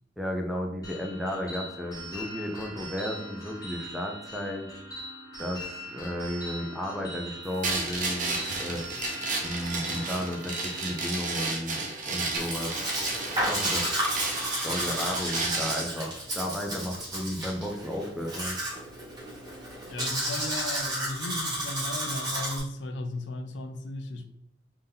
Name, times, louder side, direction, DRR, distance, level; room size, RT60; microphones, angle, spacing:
voice 1, 0.2-4.7 5.4-8.8 9.4-12.8 13.4-14.2 14.6-18.6, equal, ahead, 0.5 m, -34 dB
sound 1, 0.8-11.1, equal, 20° left, 1.0 m, -41 dB
sound 2, 7.6-15.9, right 3 dB, 45° right, 0.7 m, -32 dB
Domestic sounds home sounds, 12.4-22.6, right 1 dB, 25° right, 1.3 m, -32 dB
voice 2, 19.9-24.3, left 2 dB, 70° left, 0.4 m, -36 dB
3.5 x 2.7 x 3.6 m
head